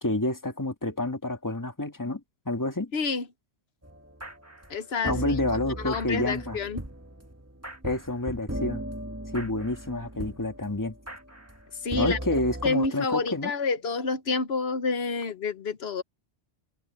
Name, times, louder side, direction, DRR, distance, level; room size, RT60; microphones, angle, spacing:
voice 1, 0.0-2.2 2.5-2.9 5.0-6.6 7.8-8.8 9.3-11.0 12.0-13.5, left 2 dB, 15° left, 2.0 m, -29 dB
voice 2, 2.9-3.2 4.7-5.2 5.8-6.8 11.8-12.2 12.6-16.0, left 4 dB, 60° left, 1.2 m, -28 dB
sound 1, 3.8-12.7, right 1 dB, 10° right, 1.7 m, -38 dB
open air
omnidirectional pair, 1.2 m